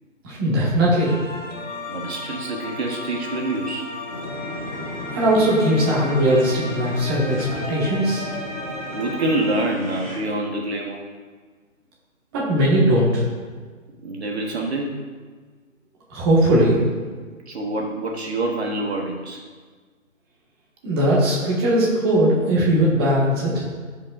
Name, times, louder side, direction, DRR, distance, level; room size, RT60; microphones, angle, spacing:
voice 1, 0.2-1.2 5.1-8.3 12.3-13.3 16.1-16.8 20.8-23.6, right 1 dB, 20° right, -6 dB, 1.7 m, -19 dB
sound 1, 1.0-9.6, left 1 dB, 65° left, 2.2 m, -35 dB
voice 2, 1.9-3.9 8.9-11.0 14.0-15.0 17.5-19.4, right 2 dB, 50° right, 0 dB, 1.3 m, -26 dB
sound 2, 4.1-10.2, left 1 dB, ahead, 1.3 m, -34 dB
14.5 x 5.4 x 2.5 m, 1.5 s
hypercardioid pair, 160°, 40 cm